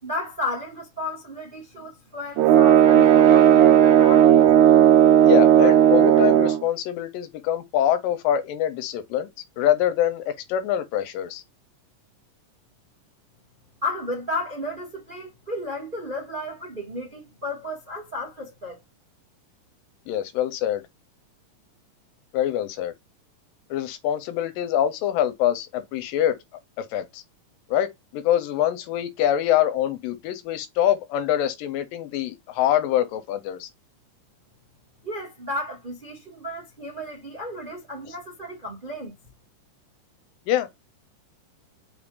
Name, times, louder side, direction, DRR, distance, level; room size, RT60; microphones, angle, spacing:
voice 1, 0.0-4.3 13.8-18.8 35.0-39.1, left 1 dB, 35° right, 0.8 m, -33 dB
sound 1, 2.4-6.6, right 10 dB, 75° right, 2.0 m, -14 dB
voice 2, 5.2-9.3 9.6-11.4 20.1-20.8 22.3-22.9 23.7-26.4 26.8-27.2 27.7-33.7 40.5-40.7, left 11 dB, 85° left, 2.4 m, -24 dB
5.4 x 3.6 x 2.5 m
omnidirectional pair, 3.9 m